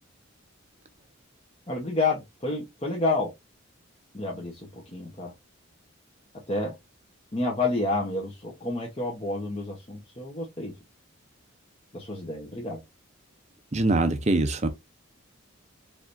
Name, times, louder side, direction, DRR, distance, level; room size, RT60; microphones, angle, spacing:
voice 1, 1.7-3.3 4.1-5.3 6.5-6.7 7.3-10.7 11.9-12.8, left 2 dB, 25° left, 1.1 m, -29 dB
voice 2, 13.7-14.7, right 2 dB, 30° right, 0.7 m, -23 dB
4.7 x 3.4 x 2.6 m
head